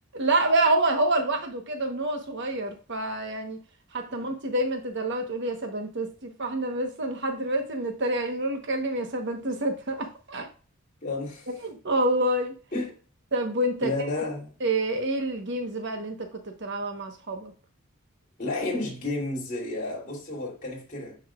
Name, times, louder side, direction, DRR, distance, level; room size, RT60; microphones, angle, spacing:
voice 1, 0.1-3.6 3.9-10.5 11.5-12.5 13.3-13.9 14.6-16.1 16.4-17.5, right 1 dB, 55° right, 1.2 m, -27 dB
voice 2, 11.0-11.5 12.7-12.9 13.8-14.5 18.4-21.2, left 2 dB, 40° left, 3.1 m, -31 dB
9.5 x 5.6 x 2.5 m
head